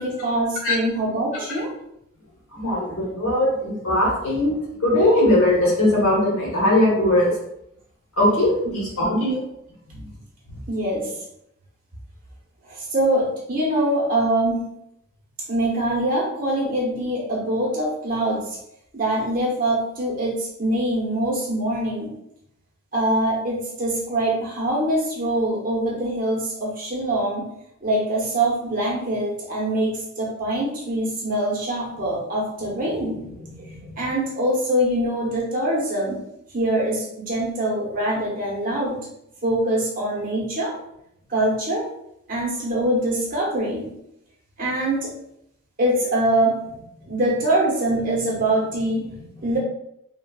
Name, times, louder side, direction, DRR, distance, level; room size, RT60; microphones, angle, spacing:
voice 1, 0.0-1.7 10.7-11.1 12.7-14.7 15.5-18.6 18.9-22.1 22.9-27.5 27.8-36.2 36.5-39.0 39.4-40.7 41.3-41.8 42.3-43.9 44.6-45.1 45.8-49.6, right 1 dB, 40° right, -4 dB, 0.8 m, -24 dB
voice 2, 2.5-4.5 4.8-7.3 8.2-9.4, left 1 dB, 80° left, -4 dB, 1.2 m, -20 dB
3.3 x 2.3 x 2.3 m, 0.78 s
head